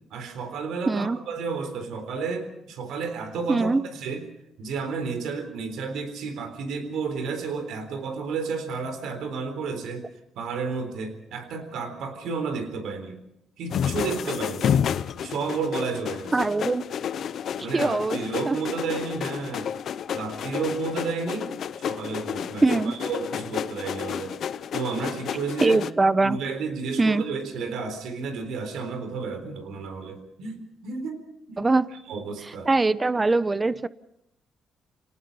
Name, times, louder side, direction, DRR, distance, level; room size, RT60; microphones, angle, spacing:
voice 1, 0.1-4.3 4.6-10.1 10.4-13.2 13.6-14.7 15.2-16.3 17.6-19.7 20.1-21.5 21.8-24.4 24.7-25.8 26.2-31.2 31.5-31.7 32.1-32.7, right 5 dB, 80° right, 8 dB, 3.8 m, -32 dB
voice 2, 0.9-1.2 3.5-3.8 16.3-16.8 17.7-18.2 18.5-18.6 22.6-22.9 25.6-26.4 27.0-27.2 31.6-31.9 32.5-33.9, right 3 dB, 25° right, 16 dB, 0.9 m, -22 dB
sound 1, 13.7-25.9, left 8 dB, 65° left, 0.8 m, -30 dB
28.0 x 18.5 x 5.5 m, 0.80 s
cardioid pair, 90°, 0 cm